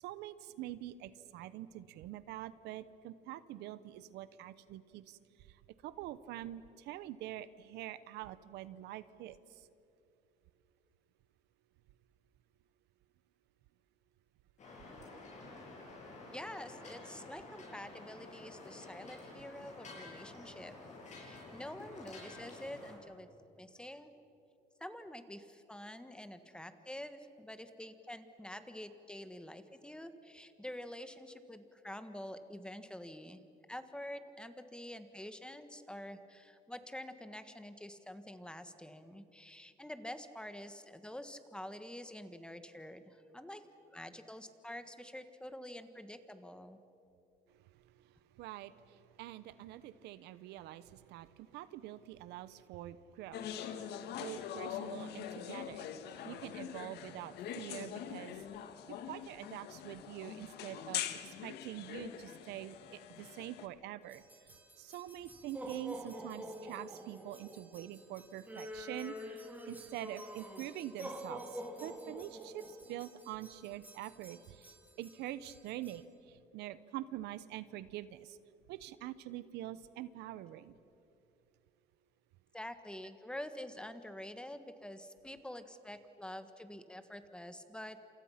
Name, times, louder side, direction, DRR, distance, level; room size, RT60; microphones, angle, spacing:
voice 1, 0.0-5.2 5.5-9.7 47.5-55.9 56.3-58.4 58.9-64.2 64.8-69.4 69.6-78.4 78.7-80.7, right 13 dB, 85° right, 15 dB, 0.9 m, -46 dB
sound 1, 14.6-22.9, left 2 dB, 45° left, 7.4 m, -51 dB
voice 2, 16.3-20.7 21.1-23.3 23.6-24.1 24.8-33.4 33.7-43.6 43.9-46.8 82.5-88.0, left 1 dB, 5° left, 9 dB, 1.6 m, -47 dB
sound 2, 53.3-63.7, left 9 dB, 75° left, 1.6 m, -43 dB
sound 3, 64.1-76.0, equal, 10° right, 3.4 m, -47 dB
29.0 x 27.5 x 5.8 m, 2.7 s
cardioid pair, 110°, 17 cm